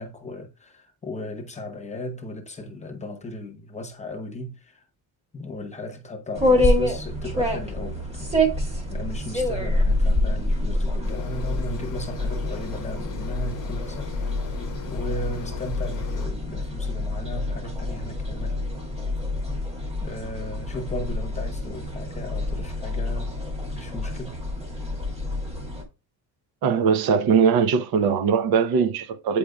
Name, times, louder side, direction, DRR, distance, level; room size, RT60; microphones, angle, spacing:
voice 1, 0.0-4.8 5.3-14.1 14.4-14.6 14.9-18.6 20.0-23.4 23.7-24.4, left 1 dB, 20° left, 0.8 m, -36 dB
sound 1, 6.3-25.8, left 1 dB, 15° right, 1.5 m, -27 dB
sound 2, 11.0-16.3, left 7 dB, 50° left, 0.7 m, -41 dB
voice 2, 26.6-29.4, right 6 dB, 70° right, 0.7 m, -20 dB
8.5 x 5.0 x 2.2 m
cardioid pair, 175°, 38 cm